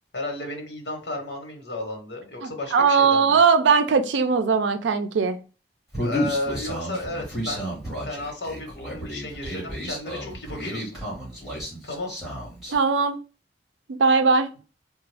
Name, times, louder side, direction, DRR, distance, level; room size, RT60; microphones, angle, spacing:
voice 1, 0.1-3.4 6.0-11.0 11.8-12.1, left 2 dB, 70° left, 1.1 m, -33 dB
voice 2, 2.4-5.4 12.7-13.2 13.9-14.5, right 5 dB, 90° right, 0.4 m, -20 dB
Human voice, 5.9-12.7, equal, ahead, 1.7 m, -32 dB
3.4 x 2.2 x 3.3 m
head